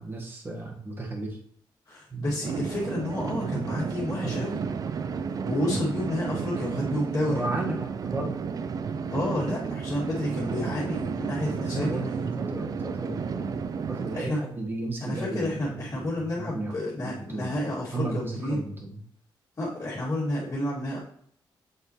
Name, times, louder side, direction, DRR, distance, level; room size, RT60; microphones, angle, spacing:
voice 1, 0.0-1.4 2.1-2.3 3.4-3.7 4.2-4.5 6.7-6.9 7.3-8.4 11.4-13.6 13.9-16.7 17.0-17.6 17.9-19.0, right 2 dB, 25° right, 0 dB, 1.5 m, -34 dB
voice 2, 1.9-4.6 5.3-7.4 9.1-12.0 14.1-14.4 15.0-18.6 19.6-21.0, left 1 dB, 30° left, -9 dB, 2.4 m, -30 dB
sound 1, 2.4-14.2, right 6 dB, 45° right, 0.4 m, -32 dB
7.9 x 7.2 x 3.1 m, 0.64 s
wide cardioid pair, 170°, 9 cm